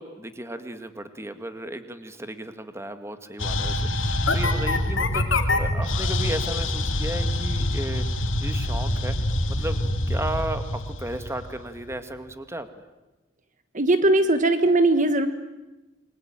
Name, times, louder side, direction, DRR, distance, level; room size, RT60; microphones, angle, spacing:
voice 1, 0.0-8.1 8.4-9.2 9.5-12.7, right 1 dB, 15° right, 9 dB, 1.8 m, -34 dB
sound 1, 3.4-11.9, left 1 dB, 85° left, 2.8 m, -25 dB
voice 2, 13.7-15.3, right 2 dB, 40° right, 9 dB, 1.3 m, -19 dB
28.0 x 23.0 x 9.0 m, 1.1 s
head